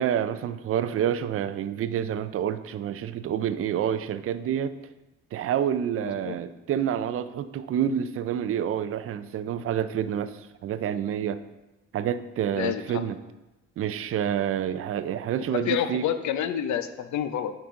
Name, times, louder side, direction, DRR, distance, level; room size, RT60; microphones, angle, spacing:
voice 1, 0.0-4.8 5.3-11.4 11.9-13.2 13.8-16.1, right 9 dB, 50° right, 13 dB, 0.4 m, -28 dB
voice 2, 12.5-13.0 15.5-17.5, left 9 dB, 70° left, 11 dB, 0.6 m, -28 dB
8.6 x 4.0 x 3.7 m, 1.0 s
cardioid pair, 90°, 30 cm